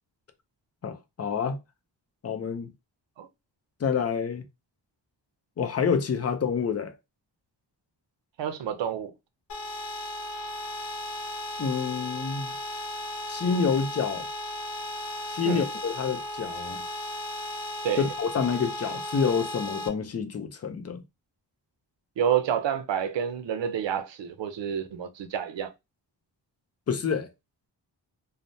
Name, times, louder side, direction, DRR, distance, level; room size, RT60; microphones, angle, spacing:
voice 1, 0.8-1.6 2.2-2.7 3.8-4.4 5.6-6.9 11.6-12.6 13.3-14.3 15.3-16.8 18.0-21.0 26.9-27.3, left 6 dB, 35° left, 0.4 m, -28 dB
voice 2, 8.4-9.1 15.4-15.6 17.8-18.0 22.2-25.7, right 8 dB, 75° right, 0.6 m, -28 dB
sound 1, 9.5-19.9, left 1 dB, 70° left, 0.7 m, -35 dB
3.2 x 2.1 x 2.6 m
wide cardioid pair, 165°, 44 cm